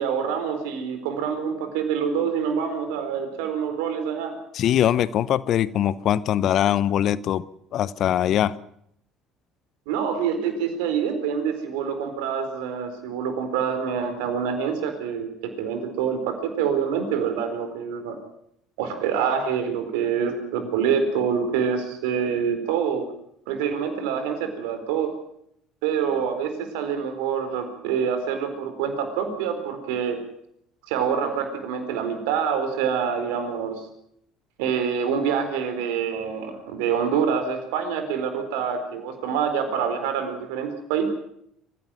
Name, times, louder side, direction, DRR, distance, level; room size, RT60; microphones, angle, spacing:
voice 1, 0.0-4.4 9.9-18.2 18.8-23.1 23.5-25.1 25.8-30.2 30.9-33.8 34.6-41.0, right 7 dB, 70° right, 7 dB, 4.2 m, -26 dB
voice 2, 4.5-7.4 7.7-8.5, left 11 dB, 55° left, 19 dB, 0.8 m, -22 dB
25.0 x 15.5 x 7.8 m, 0.74 s
figure-of-eight pair, 60°, 0 cm